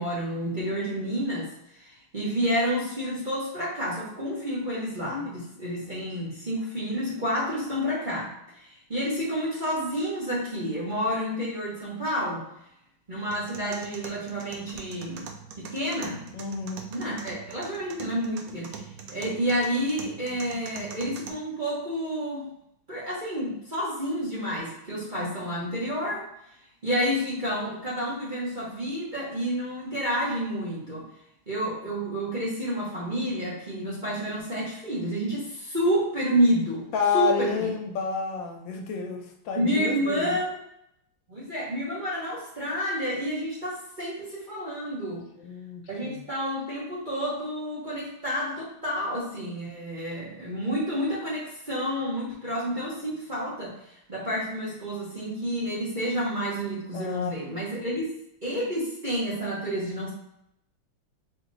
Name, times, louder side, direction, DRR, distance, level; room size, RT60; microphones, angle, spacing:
voice 1, 0.0-12.4 13.1-15.3 15.6-16.2 16.9-18.8 19.1-22.5 22.9-26.3 26.8-31.1 31.5-36.9 37.1-37.7 39.5-40.6 41.3-45.3 45.9-53.8 54.1-58.1 58.4-60.1, equal, 30° right, -8 dB, 1.0 m, -29 dB
sound 1, 13.3-21.3, right 6 dB, 80° right, 0.8 m, -43 dB
voice 2, 16.3-16.8 36.9-40.4 45.1-46.2 56.9-57.3 57.8-57.9, left 6 dB, 75° left, 2 dB, 1.3 m, -30 dB
4.4 x 2.9 x 3.9 m, 0.77 s
omnidirectional pair, 2.2 m